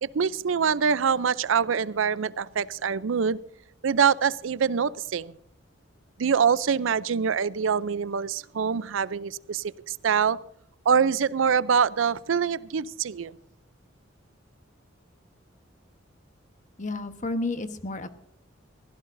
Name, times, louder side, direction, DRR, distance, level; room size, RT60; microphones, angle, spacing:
voice 1, 0.0-3.4 3.8-5.3 6.2-10.4 10.9-13.3, right 6 dB, 80° right, 19 dB, 0.5 m, -24 dB
voice 2, 16.8-18.1, left 2 dB, 40° left, 10 dB, 1.1 m, -31 dB
23.0 x 16.5 x 2.6 m, 0.68 s
head